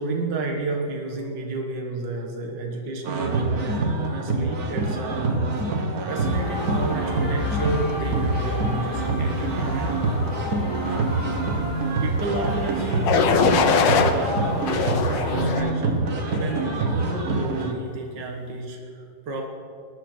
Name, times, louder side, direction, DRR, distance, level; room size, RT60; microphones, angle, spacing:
voice 1, 0.0-5.8 6.1-10.0 12.0-19.4, right 3 dB, 75° right, 0 dB, 2.1 m, -31 dB
sound 1, 3.0-17.7, right 2 dB, 60° right, 1.7 m, -26 dB
sound 2, 6.2-15.6, left 2 dB, 65° left, 3.2 m, -32 dB
sound 3, 13.1-14.1 14.7-15.7 16.3-16.7, left 6 dB, 90° left, 1.6 m, -22 dB
20.5 x 10.5 x 4.4 m, 2.4 s
omnidirectional pair, 1.9 m